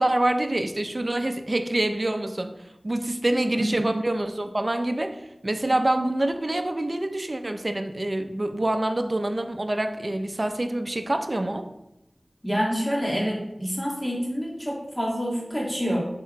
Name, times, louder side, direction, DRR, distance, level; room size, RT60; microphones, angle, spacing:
voice 1, 0.0-2.5 2.8-11.7, right 1 dB, 45° right, 8 dB, 0.6 m, -26 dB
voice 2, 12.4-16.1, equal, 15° left, -3 dB, 2.3 m, -27 dB
7.1 x 3.8 x 4.5 m, 0.86 s
wide cardioid pair, 45°, 0 cm